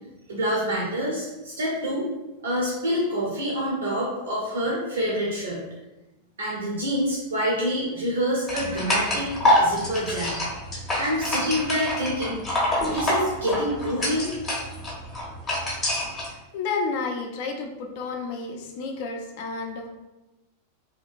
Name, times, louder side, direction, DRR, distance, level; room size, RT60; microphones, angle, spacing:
voice 1, 0.3-2.1 2.4-5.6 6.4-9.3 9.6-10.3 11.0-12.4 12.9-14.3, equal, 65° right, -4 dB, 0.6 m, -27 dB
sound 1, 8.5-16.3, left 1 dB, 20° left, 0.8 m, -26 dB
voice 2, 16.3-19.9, left 4 dB, 50° left, 2 dB, 0.4 m, -31 dB
2.8 x 2.1 x 2.4 m, 1.0 s
figure-of-eight pair, 90°, 0 cm